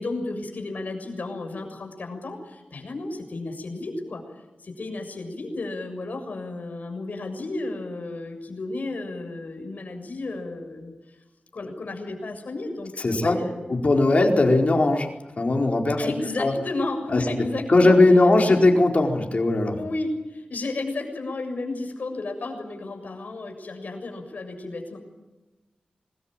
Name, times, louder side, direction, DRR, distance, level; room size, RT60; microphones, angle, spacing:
voice 1, 0.0-4.2 4.6-10.9 11.5-13.9 16.0-18.0 18.4-18.6 19.8-25.0, left 2 dB, 75° left, 5 dB, 7.0 m, -33 dB
voice 2, 13.0-13.4 13.7-15.1 15.4-16.0 16.4-16.5 17.1-17.2 17.7-19.8, left 2 dB, 55° left, 2 dB, 4.7 m, -19 dB
25.5 x 20.5 x 9.1 m, 1.1 s
wide cardioid pair, 95°, 3 cm